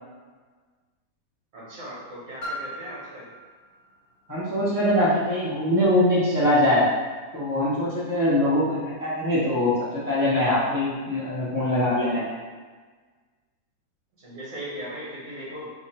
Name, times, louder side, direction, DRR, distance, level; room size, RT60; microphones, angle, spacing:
voice 1, 1.5-3.3 14.2-15.7, right 1 dB, 70° right, -9 dB, 1.6 m, -38 dB
Piano, 2.4-7.8 8.6-8.7, equal, 50° left, 1.5 m, -42 dB
voice 2, 4.3-6.9 7.3-12.3, left 1 dB, 25° left, -9 dB, 0.4 m, -22 dB
3.5 x 2.2 x 4.1 m, 1.4 s
omnidirectional pair, 1.7 m